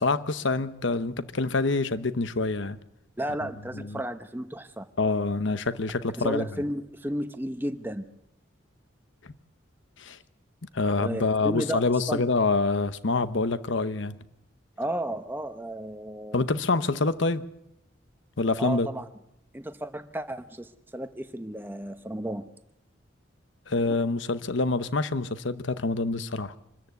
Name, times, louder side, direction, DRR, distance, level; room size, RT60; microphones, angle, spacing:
voice 1, 0.0-2.8 3.7-4.0 5.0-6.5 10.0-10.2 10.7-14.2 16.3-17.4 18.4-18.9 23.7-26.5, left 3 dB, 65° left, 0.9 m, -26 dB
voice 2, 3.2-4.9 6.2-8.1 11.0-12.2 14.8-16.4 18.6-19.1 19.5-22.5, right 1 dB, 10° right, 0.9 m, -33 dB
25.0 x 14.0 x 8.1 m
head